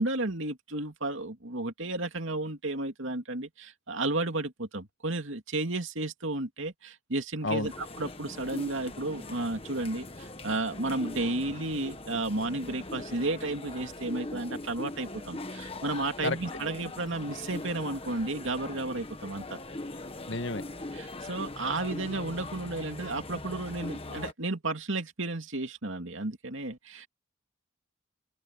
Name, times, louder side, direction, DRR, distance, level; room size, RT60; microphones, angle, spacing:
voice 1, 0.0-19.6 20.9-27.1, right 2 dB, 65° right, 2.6 m, -33 dB
sound 1, 7.6-24.3, left 2 dB, 25° left, 1.4 m, -41 dB
voice 2, 20.3-20.6, left 2 dB, 60° left, 1.9 m, -30 dB
open air
head